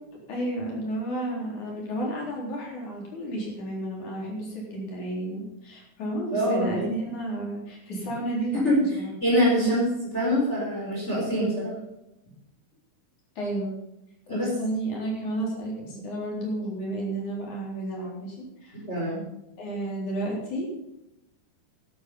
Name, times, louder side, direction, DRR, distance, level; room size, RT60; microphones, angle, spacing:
voice 1, 0.3-8.7 9.0-9.1 9.6-9.8 13.4-13.7 14.3-18.4 18.6-18.8 19.6-20.7, right 1 dB, 65° left, -2 dB, 5.4 m, -31 dB
voice 2, 6.3-6.8 8.5-8.8 9.2-9.9 10.1-11.7 14.3-14.5 15.9-16.1 18.9-19.3, equal, 20° left, -5 dB, 4.6 m, -24 dB
12.0 x 11.0 x 5.4 m, 0.89 s
omnidirectional pair, 3.6 m